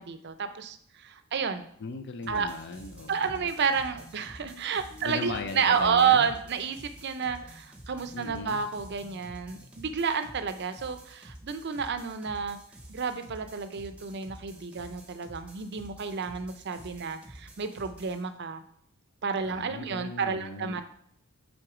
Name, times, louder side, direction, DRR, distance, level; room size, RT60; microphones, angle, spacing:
voice 1, 0.0-1.7 2.3-2.6 3.1-12.6 12.9-18.6 19.2-20.8, right 6 dB, 50° right, 10 dB, 0.5 m, -30 dB
voice 2, 1.8-3.4 5.0-6.3 8.1-8.6 19.4-20.8, left 3 dB, 50° left, 7 dB, 0.4 m, -38 dB
sound 1, 2.2-18.2, right 1 dB, 5° right, 0.8 m, -50 dB
sound 2, 2.9-9.8, left 1 dB, 20° left, 0.9 m, -55 dB
7.7 x 3.9 x 4.9 m, 0.67 s
head